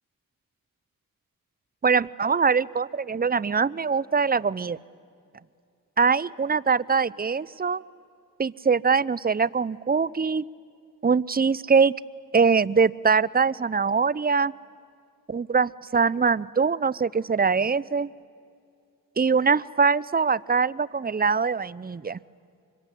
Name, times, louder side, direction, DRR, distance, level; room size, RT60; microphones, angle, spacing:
voice 1, 1.8-4.8 6.0-7.8 8.4-10.4 11.0-11.9 12.3-14.5 15.3-18.1 19.2-22.2, right 5 dB, 25° right, 20 dB, 0.6 m, -23 dB
25.0 x 22.5 x 10.0 m, 2.4 s
cardioid pair, 45°, 35 cm